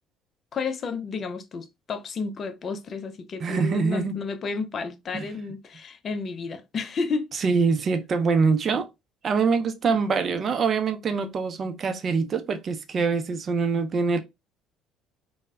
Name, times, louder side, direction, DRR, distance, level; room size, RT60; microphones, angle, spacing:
voice 1, 0.5-7.3 9.9-10.0, left 4 dB, 45° left, 0.4 m, -32 dB
voice 2, 3.4-4.2 5.1-5.3 7.4-8.9 9.2-14.2, right 5 dB, 45° right, 0.5 m, -24 dB
3.2 x 2.0 x 2.3 m
hypercardioid pair, 65°, 0 cm